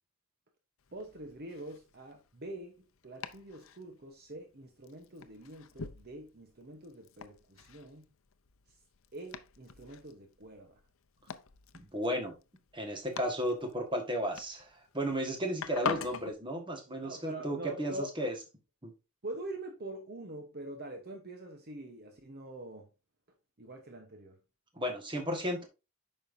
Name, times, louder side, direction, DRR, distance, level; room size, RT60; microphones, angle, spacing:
Domestic sounds home sounds, 0.8-16.3, left 6 dB, 65° left, 0.6 m, -45 dB
voice 1, 0.9-8.0 8.7-8.8 9.1-10.8 17.0-18.1 19.2-22.9 23.6-24.4, right 1 dB, 45° right, 1.0 m, -45 dB
voice 2, 11.8-12.3 12.7-18.3 18.8-18.9 24.7-25.6, equal, 20° right, 1.6 m, -34 dB
8.8 x 5.5 x 2.7 m
head